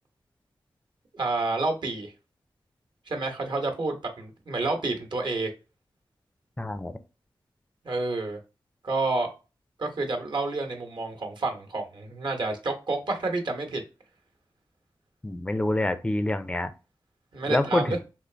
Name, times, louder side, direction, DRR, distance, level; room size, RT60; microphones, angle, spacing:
voice 1, 1.1-2.1 3.1-5.5 7.8-8.4 8.8-9.3 9.8-13.8 17.3-18.0, right 3 dB, 60° right, 1.0 m, -29 dB
voice 2, 6.6-6.9 15.2-16.7 17.5-18.0, left 1 dB, 10° left, 0.4 m, -26 dB
3.8 x 2.5 x 3.2 m
wide cardioid pair, 100°, 9 cm